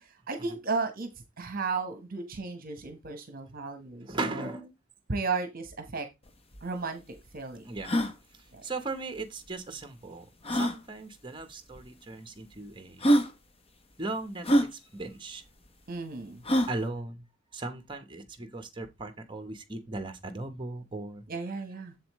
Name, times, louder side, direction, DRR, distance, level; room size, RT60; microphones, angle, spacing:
voice 1, 0.3-1.1 1.4-4.5 5.1-6.1 6.6-7.0 7.3-7.6 8.5-8.6 15.9-16.4 21.3-21.9, right 4 dB, 45° right, 1.2 m, -34 dB
voice 2, 4.1-4.7 7.6-7.9 8.6-10.3 10.5-13.1 14.0-15.4 16.7-17.2 17.5-21.2, right 2 dB, 25° right, 1.1 m, -37 dB
sound 1, 6.3-6.4 6.5-6.6 7.2-7.3 7.8-8.1 9.5-9.6 10.4-10.8 11.8-11.9 12.6-12.7 13.0-13.3 14.4-14.7 16.4-16.8, equal, 30° left, 0.8 m, -24 dB
7.3 x 7.1 x 3.1 m
head